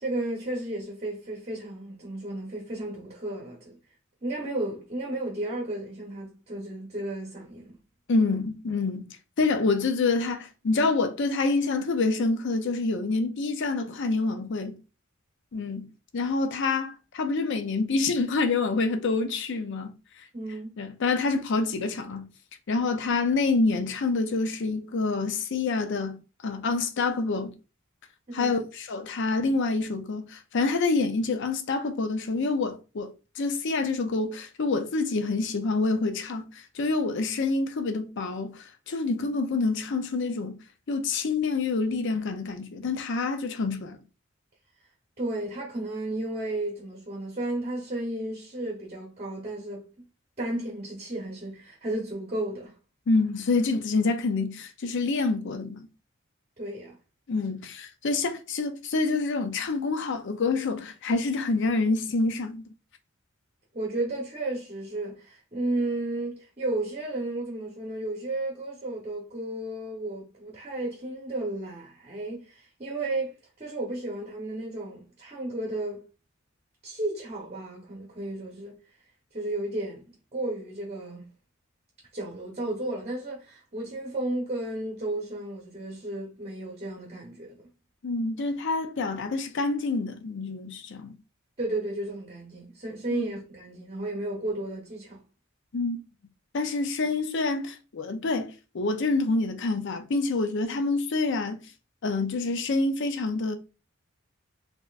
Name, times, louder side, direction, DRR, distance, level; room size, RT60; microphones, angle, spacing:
voice 1, 0.0-3.8 4.2-7.8 20.3-20.7 28.3-28.6 45.2-49.8 50.4-52.7 56.6-56.9 63.7-76.0 76.8-78.8 79.3-81.2 82.1-87.6 91.6-95.2 97.0-97.1, right 2 dB, 30° right, 0.8 m, -33 dB
voice 2, 8.1-9.1 9.4-14.8 15.5-15.9 16.1-19.9 20.8-22.3 22.7-27.5 28.3-36.5 36.8-40.6 40.9-44.0 53.1-55.9 57.3-62.7 88.0-91.2 93.1-93.3 95.7-96.0 96.5-101.6 102.0-103.6, left 3 dB, 60° left, 0.5 m, -27 dB
4.2 x 2.9 x 2.4 m
head